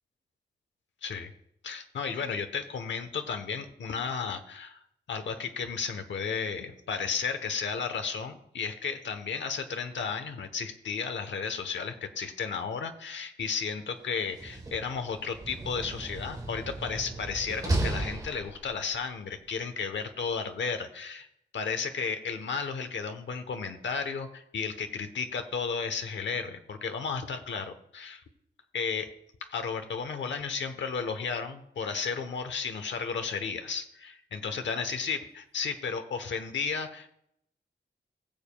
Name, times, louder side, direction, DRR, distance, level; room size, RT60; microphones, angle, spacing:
voice 1, 1.6-4.8 5.1-21.3 21.5-28.2 28.7-29.1 29.5-37.1, left 5 dB, 80° left, 7 dB, 0.9 m, -33 dB
Slam, 14.2-18.9, right 2 dB, 20° right, 1.3 m, -35 dB
20.5 x 7.3 x 2.3 m, 0.74 s
wide cardioid pair, 180°, 19 cm